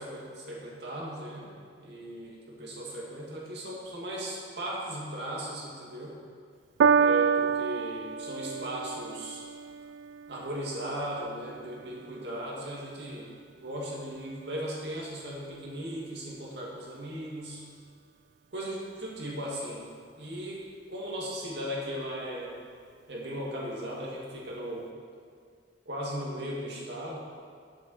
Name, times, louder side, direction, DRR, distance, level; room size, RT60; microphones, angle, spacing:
voice 1, 0.0-1.5 1.8-6.2 6.9-9.4 10.3-13.3 13.6-17.6 18.5-19.8 20.1-20.6 20.9-22.6 23.1-24.9 25.9-27.2, right 1 dB, 65° right, -4 dB, 2.3 m, -37 dB
Piano, 6.8-13.4 14.2-14.3, right 6 dB, 90° right, 0.3 m, -29 dB
8.2 x 7.1 x 6.5 m, 2.1 s
head